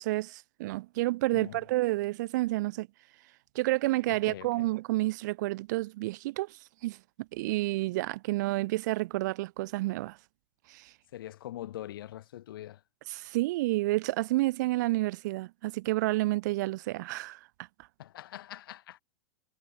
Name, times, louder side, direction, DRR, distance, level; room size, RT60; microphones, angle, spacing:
voice 1, 0.0-2.9 3.5-10.2 10.7-10.9 13.1-17.4, right 19 dB, 50° right, 2.8 m, -30 dB
voice 2, 1.3-1.6 4.1-4.7 11.1-12.8 18.0-19.0, left 13 dB, 70° left, 3.0 m, -43 dB
supercardioid pair, 165°, 12 cm